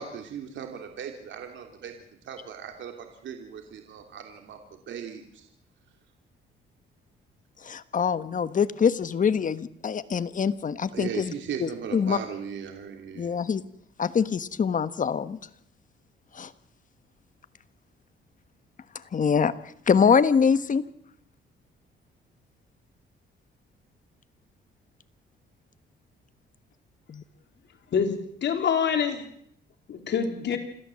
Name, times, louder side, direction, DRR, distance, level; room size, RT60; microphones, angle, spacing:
voice 1, 0.0-4.6 4.9-5.5 10.9-13.3, right 7 dB, 70° right, 5 dB, 3.0 m, -38 dB
voice 2, 7.6-11.3 11.6-12.2 13.1-13.6 14.0-15.4 16.3-16.5 18.9-20.8 27.1-27.2 30.5-30.6, left 6 dB, 40° left, 13 dB, 1.4 m, -24 dB
voice 3, 27.9-29.3 29.9-30.6, left 7 dB, 65° left, 5 dB, 3.8 m, -26 dB
28.0 x 13.5 x 7.7 m, 0.68 s
cardioid pair, 90°, 20 cm